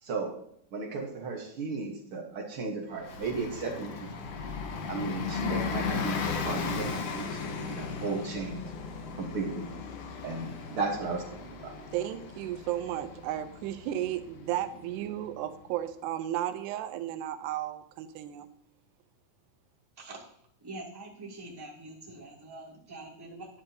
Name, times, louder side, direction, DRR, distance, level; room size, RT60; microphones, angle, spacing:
voice 1, 0.0-0.3 0.7-4.2 4.9-8.6 9.2-9.7 10.2-11.2 11.5-11.7, right 4 dB, 60° right, 1 dB, 1.5 m, -35 dB
Bus, 3.0-15.3, left 5 dB, 65° left, 2.2 m, -36 dB
voice 2, 11.9-18.5, right 12 dB, 85° right, 9 dB, 2.9 m, -34 dB
voice 3, 20.0-20.3 20.6-23.5, right 2 dB, 5° right, -5 dB, 2.1 m, -44 dB
11.0 x 11.0 x 2.9 m, 0.68 s
omnidirectional pair, 4.7 m